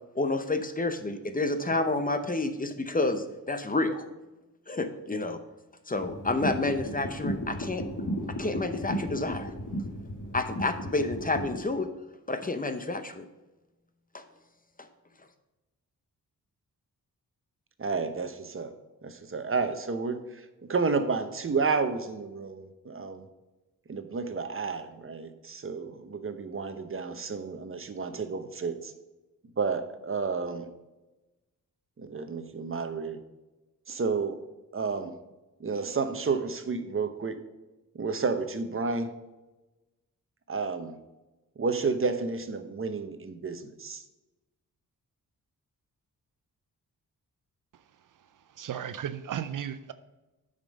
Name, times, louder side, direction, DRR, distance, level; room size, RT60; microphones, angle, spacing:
voice 1, 0.2-4.1 4.7-5.4 5.9-7.8 8.4-9.5 10.3-11.9 12.3-13.2 14.1-14.2, left 2 dB, 25° left, 8 dB, 0.8 m, -29 dB
sound 1, 6.0-11.6, equal, 60° left, 1.6 m, -35 dB
voice 2, 17.8-18.7 19.0-23.2 23.9-28.9 29.6-30.7 32.0-33.2 33.9-34.4 34.7-35.1 35.6-37.4 37.9-39.1 40.5-41.0 41.6-44.0, right 4 dB, 35° right, 9 dB, 0.9 m, -31 dB
voice 3, 48.3-49.9, right 9 dB, 65° right, 12 dB, 0.5 m, -35 dB
9.0 x 5.2 x 5.3 m, 1.1 s
cardioid pair, 90°, 35 cm